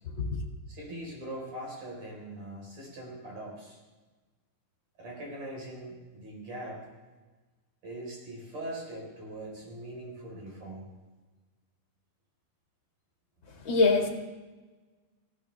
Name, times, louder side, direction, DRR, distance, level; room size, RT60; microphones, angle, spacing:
voice 1, 0.7-3.8 5.0-6.8 7.8-10.8, right 1 dB, 55° right, -2 dB, 5.5 m, -41 dB
voice 2, 13.6-14.1, left 3 dB, 40° left, 1 dB, 2.5 m, -23 dB
19.0 x 16.0 x 3.4 m, 1.3 s
omnidirectional pair, 3.7 m